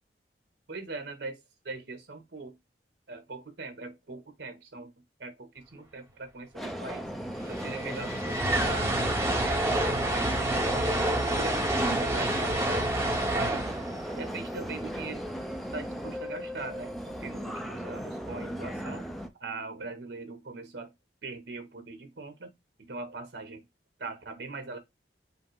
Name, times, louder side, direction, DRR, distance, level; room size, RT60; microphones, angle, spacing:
voice 1, 0.7-2.6 3.1-4.9 5.2-7.1 7.5-11.6 12.0-13.8 14.1-15.2 15.7-19.1 19.4-20.9 21.2-22.5 22.8-23.6 24.0-24.8, right 3 dB, 80° right, 1.2 m, -41 dB
Subway metro underground, 6.5-19.3, equal, ahead, 0.5 m, -37 dB
sound 1, 7.2-15.4, right 1 dB, 15° right, 0.9 m, -29 dB
5.5 x 2.0 x 4.7 m
head